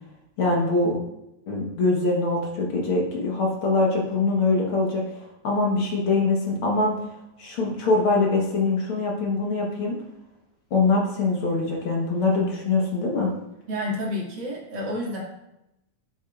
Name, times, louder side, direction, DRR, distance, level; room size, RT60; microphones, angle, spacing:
voice 1, 0.4-1.0 1.5-7.0 7.4-10.0 10.7-13.3, left 3 dB, 55° left, -1 dB, 1.6 m, -23 dB
voice 2, 13.7-15.2, left 1 dB, 40° right, -5 dB, 2.4 m, -29 dB
8.6 x 7.9 x 2.4 m, 0.88 s
omnidirectional pair, 3.4 m